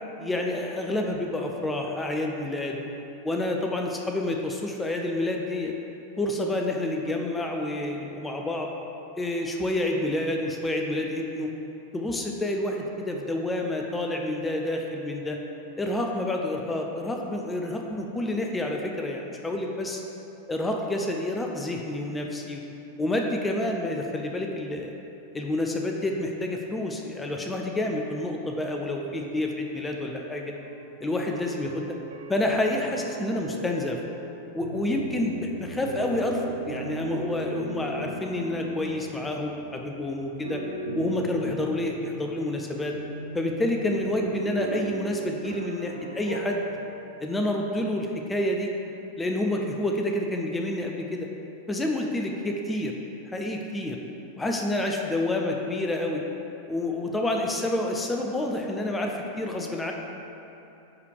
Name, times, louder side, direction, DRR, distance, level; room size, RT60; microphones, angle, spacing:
voice 1, 0.2-2.8 3.2-5.7 6.2-8.7 9.2-11.5 11.9-15.4 15.8-20.0 20.5-22.6 23.0-24.9 25.3-30.5 31.0-31.8 32.3-34.0 34.5-36.4 36.7-40.6 40.9-42.9 43.3-46.6 47.2-48.7 49.2-51.3 51.7-52.9 53.2-54.0 54.4-56.2 56.7-59.9, left 1 dB, 10° left, 1 dB, 0.6 m, -28 dB
sound 1, 30.5-46.9, right 2 dB, 65° right, 0.5 m, -38 dB
9.5 x 3.4 x 4.6 m, 2.9 s
figure-of-eight pair, 90°, 0 cm